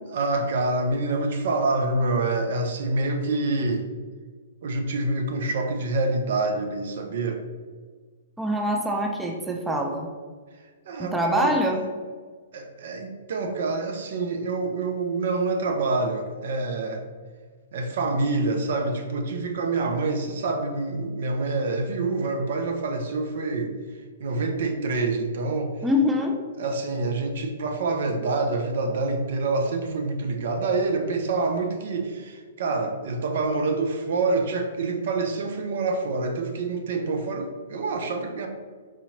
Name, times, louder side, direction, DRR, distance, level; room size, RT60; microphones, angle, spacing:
voice 1, 0.1-3.9 4.6-7.4 10.9-11.6 12.5-17.0 17.7-23.8 24.2-25.7 26.6-38.5, right 3 dB, 60° right, 5 dB, 0.5 m, -26 dB
voice 2, 8.4-10.1 11.0-11.8 25.8-26.4, left 1 dB, 10° right, 2 dB, 0.4 m, -24 dB
4.8 x 2.8 x 2.7 m, 1.5 s
hypercardioid pair, 120°, 0 cm